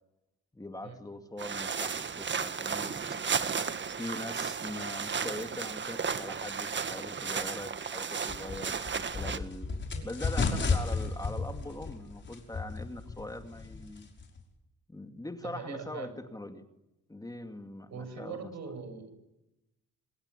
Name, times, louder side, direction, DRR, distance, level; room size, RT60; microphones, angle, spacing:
voice 1, 0.5-3.2 4.0-9.7 10.0-14.1 14.9-16.7 17.1-18.5, left 1 dB, 10° left, 7 dB, 2.4 m, -42 dB
sound 1, 1.4-9.4, right 6 dB, 40° right, 1.8 m, -34 dB
sound 2, 8.3-14.4, left 4 dB, 40° left, 5.5 m, -34 dB
voice 2, 15.4-16.1 17.9-19.1, right 5 dB, 60° right, 9 dB, 7.8 m, -41 dB
25.5 x 21.5 x 9.9 m, 0.92 s
cardioid pair, 90°, 30 cm